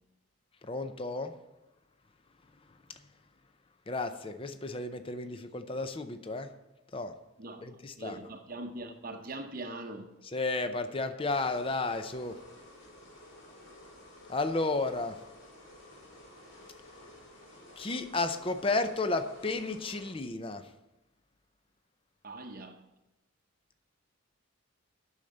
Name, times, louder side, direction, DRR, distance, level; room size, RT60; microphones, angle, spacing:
voice 1, 0.6-1.3 3.9-6.5 6.9-7.1 7.6-8.2 10.2-12.4 14.3-15.2 17.8-20.7, left 3 dB, 25° left, 0.5 m, -32 dB
voice 2, 8.0-10.1 22.2-22.8, right 2 dB, 40° right, 0.8 m, -41 dB
sound 1, 11.3-20.1, left 1 dB, 55° left, 3.8 m, -53 dB
8.8 x 6.5 x 7.9 m
head